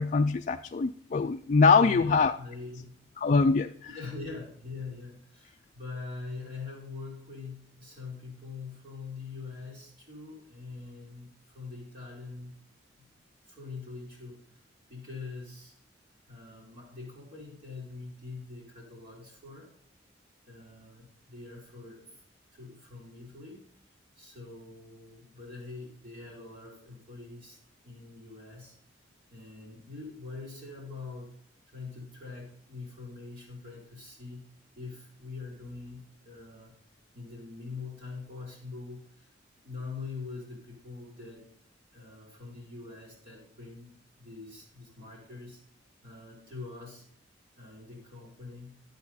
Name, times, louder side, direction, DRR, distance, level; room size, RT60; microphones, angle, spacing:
voice 1, 0.0-2.3 3.2-3.7, left 4 dB, 40° left, 0.4 m, -23 dB
voice 2, 1.7-2.9 3.9-12.5 13.4-14.6 14.9-15.7 16.3-19.7 20.4-22.2 22.5-27.6 27.8-28.8 29.3-31.3 31.7-34.4 34.7-36.7 37.1-39.3 39.6-41.5 41.9-45.6 46.0-47.1 47.6-48.7, left 4 dB, 45° right, 3.4 m, -43 dB
12.0 x 7.9 x 4.2 m
head